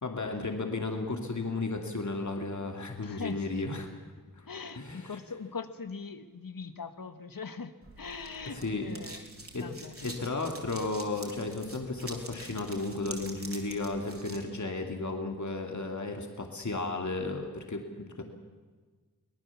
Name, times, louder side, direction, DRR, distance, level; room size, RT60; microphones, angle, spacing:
voice 1, 0.0-3.9 4.4-4.5 4.7-5.2 8.5-8.9 9.5-9.7 10.0-18.3, left 3 dB, 50° left, 4 dB, 2.5 m, -34 dB
voice 2, 3.0-3.6 4.5-9.3 9.6-10.0, left 5 dB, 65° left, 10 dB, 1.5 m, -41 dB
sound 1, 7.8-14.4, right 2 dB, 40° right, 4.4 m, -46 dB
24.0 x 18.5 x 7.2 m, 1.4 s
wide cardioid pair, 70°, 36 cm